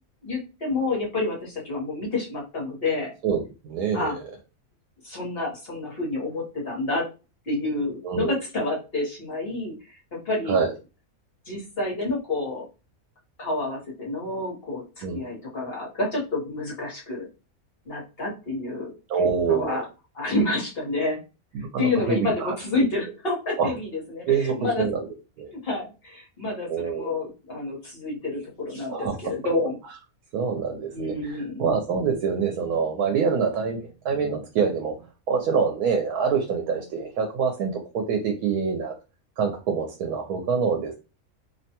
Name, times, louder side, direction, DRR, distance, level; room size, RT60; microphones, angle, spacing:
voice 1, 0.2-3.1 3.9-4.2 5.0-7.0 7.5-10.6 11.5-12.7 13.4-17.3 17.8-18.9 19.5-19.9 20.1-21.2 21.8-24.9 25.5-29.8 30.9-31.5, left 2 dB, 45° left, -3 dB, 1.1 m, -29 dB
voice 2, 3.2-4.2 8.0-8.4 10.5-10.7 15.0-15.2 19.1-19.8 21.5-22.5 23.6-23.7 24.3-25.1 25.4-25.5 26.7-27.1 28.9-29.1 30.3-35.0 35.3-38.9 39.4-40.9, right 6 dB, 85° right, 3 dB, 1.1 m, -25 dB
2.8 x 2.2 x 2.8 m, 0.30 s
omnidirectional pair, 1.5 m